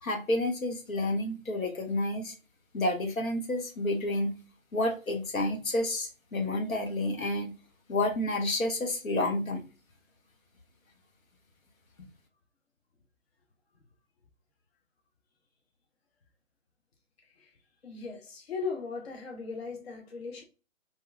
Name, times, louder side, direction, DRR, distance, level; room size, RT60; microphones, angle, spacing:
voice 1, 0.0-2.3 2.7-4.3 4.7-7.5 7.9-9.6, left 1 dB, 80° left, 0.9 m, -30 dB
voice 2, 17.8-20.4, left 4 dB, 50° left, 0.6 m, -38 dB
2.7 x 2.2 x 2.3 m
figure-of-eight pair, 155°, 41 cm